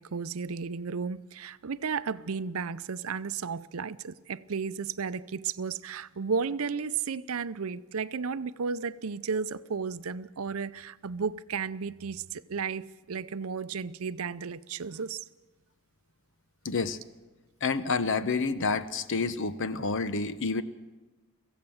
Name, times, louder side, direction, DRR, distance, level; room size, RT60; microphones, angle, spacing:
voice 1, 0.0-15.2, right 5 dB, 70° right, 0.6 m, -33 dB
voice 2, 16.6-17.0 17.6-20.6, left 4 dB, 60° left, 0.9 m, -29 dB
24.0 x 16.0 x 7.1 m
head